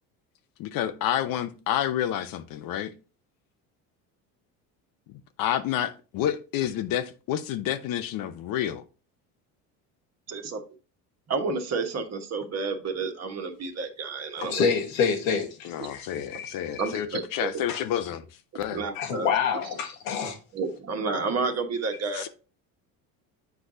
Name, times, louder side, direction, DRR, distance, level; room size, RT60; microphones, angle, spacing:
voice 1, 0.6-2.9 5.4-8.8 15.6-18.3 18.5-18.8 22.1-22.3, left 11 dB, 60° left, 0.8 m, -29 dB
voice 2, 10.3-10.6 11.3-14.7 15.8-15.9 16.8-17.5 18.5-19.3 20.5-22.2, right 4 dB, 40° right, 1.4 m, -30 dB
voice 3, 14.4-16.9 17.7-17.8 18.9-20.4, left 6 dB, 90° left, 1.5 m, -28 dB
8.1 x 4.7 x 2.7 m
supercardioid pair, 95°, 39 cm